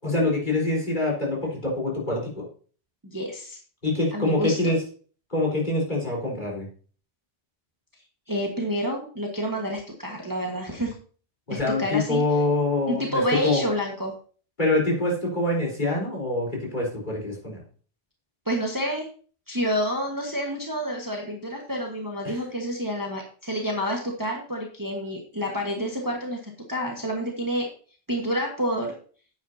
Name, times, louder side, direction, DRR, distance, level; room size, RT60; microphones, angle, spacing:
voice 1, 0.0-2.5 3.8-4.8 5.3-6.7 11.5-13.6 14.6-17.6 22.2-22.4, left 2 dB, 40° left, -3 dB, 4.2 m, -25 dB
voice 2, 3.0-3.6 4.1-4.7 8.3-10.9 11.5-12.2 12.9-14.1 18.4-19.1 19.5-26.4 26.7-27.7 28.1-28.9, equal, 20° right, 0 dB, 1.4 m, -28 dB
9.8 x 8.4 x 2.8 m, 0.41 s
omnidirectional pair, 1.2 m